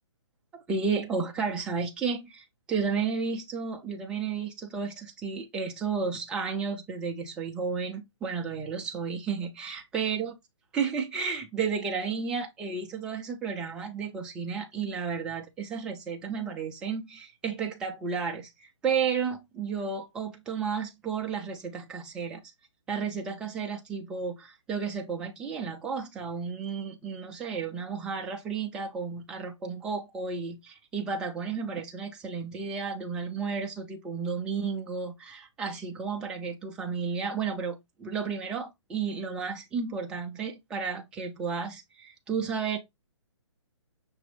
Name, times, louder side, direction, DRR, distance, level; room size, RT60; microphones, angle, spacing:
voice 1, 0.7-10.3 10.7-22.4 22.9-42.8, right 5 dB, 5° right, 0.3 m, -32 dB
5.8 x 2.6 x 3.3 m
hypercardioid pair, 145°, 16 cm